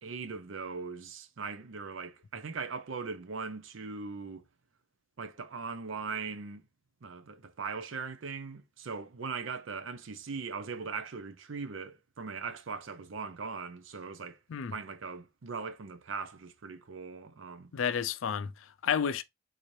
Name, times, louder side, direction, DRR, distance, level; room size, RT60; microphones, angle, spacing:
voice 1, 0.0-4.4 5.2-6.7 7.0-14.4 14.7-17.7, right 5 dB, 70° right, 0.6 m, -40 dB
voice 2, 17.7-19.2, left 7 dB, 80° left, 0.4 m, -31 dB
3.9 x 3.1 x 2.6 m
head